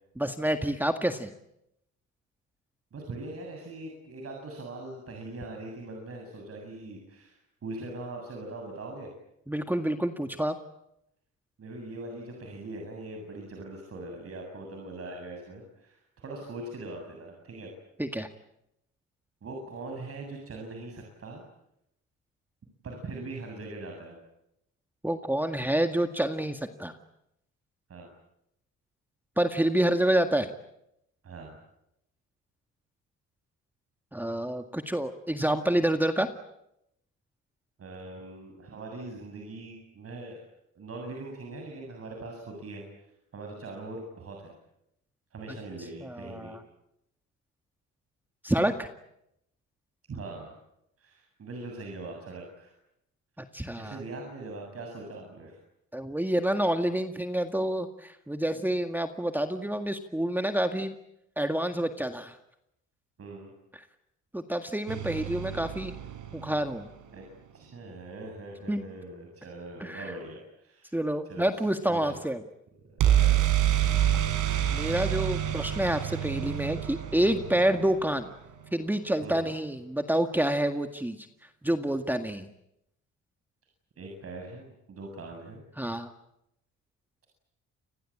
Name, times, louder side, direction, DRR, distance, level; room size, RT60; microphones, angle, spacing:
voice 1, 0.2-1.3 9.5-10.6 18.0-18.3 25.0-26.9 29.4-30.5 34.1-36.3 46.0-46.6 48.4-48.9 53.4-54.0 55.9-60.9 61.4-62.4 64.3-65.9 66.3-66.9 68.7-68.8 69.8-70.1 70.9-72.4 74.7-78.3 78.7-81.3 81.6-82.5 85.8-86.1, right 1 dB, 5° right, 7 dB, 1.9 m, -28 dB
voice 2, 2.9-9.1 11.6-17.7 19.4-21.4 22.8-24.2 27.9-28.1 31.2-31.6 37.8-40.5 40.7-42.8 43.3-44.5 45.3-46.6 50.1-50.5 51.0-52.7 53.7-55.6 63.2-63.5 67.1-67.2 67.5-71.0 71.3-72.2 72.8-73.5 79.2-79.5 84.0-85.6, right 2 dB, 50° right, 2 dB, 7.7 m, -41 dB
sound 1, 64.9-66.9 73.0-78.8, right 11 dB, 85° right, 4.9 m, -28 dB
29.5 x 21.5 x 8.7 m, 0.82 s
cardioid pair, 90°, 30 cm